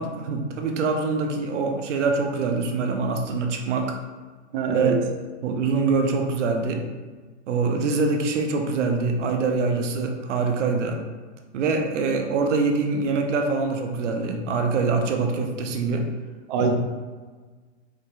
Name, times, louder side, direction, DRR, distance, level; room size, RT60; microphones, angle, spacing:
voice 1, 0.0-4.0 4.7-5.0 5.4-6.8 7.5-11.0 11.5-16.1 16.6-16.7, right 4 dB, 85° right, 3 dB, 0.7 m, -24 dB
voice 2, 4.5-5.0 16.5-16.7, right 4 dB, 50° right, 3 dB, 0.5 m, -24 dB
4.8 x 2.8 x 2.3 m, 1.4 s
hypercardioid pair, 140°, 35 cm